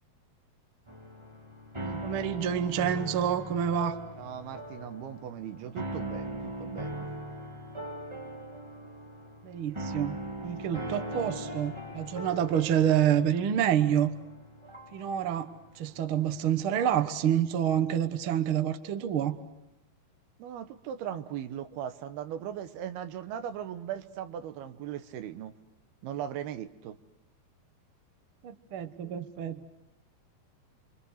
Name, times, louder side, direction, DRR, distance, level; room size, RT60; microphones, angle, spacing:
sound 1, 0.9-17.1, right 1 dB, 15° right, 1.1 m, -40 dB
voice 1, 1.8-4.0 9.4-14.1 14.9-15.5 15.7-19.4 28.4-29.7, right 9 dB, 70° right, 9 dB, 1.2 m, -28 dB
voice 2, 4.2-7.1 20.4-25.5 26.0-27.0, right 10 dB, 85° right, 10 dB, 3.1 m, -38 dB
29.5 x 24.5 x 6.5 m, 0.89 s
omnidirectional pair, 4.4 m